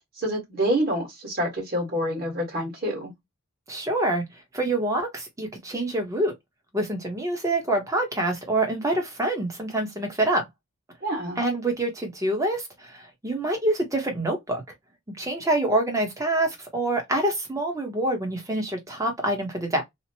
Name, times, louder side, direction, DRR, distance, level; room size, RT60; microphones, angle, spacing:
voice 1, 0.2-3.1 11.0-11.4, equal, 40° right, 1.4 m, -27 dB
voice 2, 3.7-4.2 4.5-6.3 6.7-10.4 11.4-14.6 15.2-19.8, right 1 dB, 15° right, 0.8 m, -26 dB
2.9 x 2.1 x 2.7 m
head